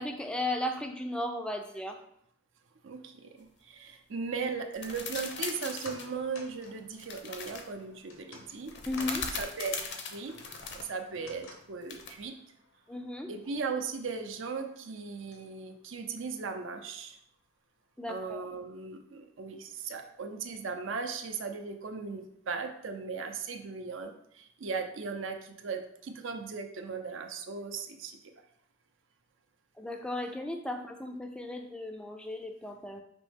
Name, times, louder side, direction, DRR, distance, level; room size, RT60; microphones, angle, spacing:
voice 1, 0.0-2.0 8.9-9.2 12.9-13.3 18.0-18.5 29.8-33.0, left 1 dB, 5° left, 5 dB, 0.3 m, -35 dB
voice 2, 2.8-8.7 9.4-10.4 10.7-12.4 13.3-17.2 18.1-28.2, right 5 dB, 70° right, 5 dB, 0.5 m, -37 dB
sound 1, 4.7-6.1 7.0-7.7 8.7-10.9 11.9-12.2, left 5 dB, 55° left, 0.5 m, -39 dB
sound 2, 5.1-17.5 17.8-17.9, left 3 dB, 85° left, 0.8 m, -54 dB
5.2 x 3.1 x 3.3 m, 0.72 s
head